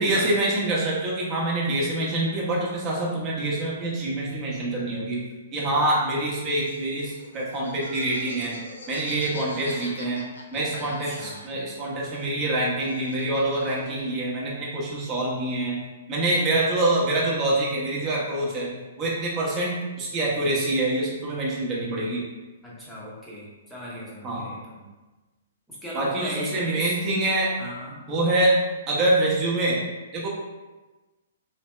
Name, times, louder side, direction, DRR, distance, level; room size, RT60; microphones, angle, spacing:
voice 1, 0.0-5.2 5.5-8.5 8.9-15.8 16.1-22.2 24.2-24.4 25.9-27.5 28.1-28.6 28.9-29.8 30.1-30.3, right 2 dB, 25° right, -5 dB, 1.0 m, -25 dB
Laughter, 6.6-11.8 12.0-14.0, left 2 dB, 85° left, 0.6 m, -43 dB
voice 2, 10.7-11.4 22.6-24.9 25.7-26.9 27.6-28.0, equal, 5° left, -7 dB, 1.0 m, -37 dB
3.2 x 2.7 x 3.2 m, 1.2 s
hypercardioid pair, 145°, 0 cm